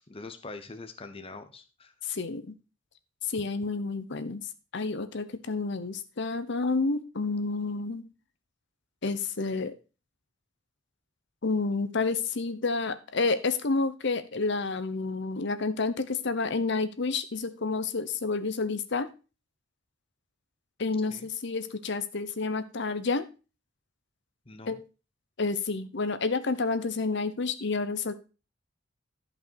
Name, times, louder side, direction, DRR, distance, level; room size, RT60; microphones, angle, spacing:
voice 1, 0.1-1.9 21.1-21.3 24.5-24.8, left 3 dB, 30° left, 8 dB, 0.9 m, -43 dB
voice 2, 2.0-2.5 3.3-8.1 9.0-9.7 11.4-19.1 20.8-23.3 24.7-24.8 25.4-28.1, left 3 dB, 60° left, 12 dB, 0.9 m, -30 dB
12.0 x 5.4 x 4.5 m, 0.32 s
head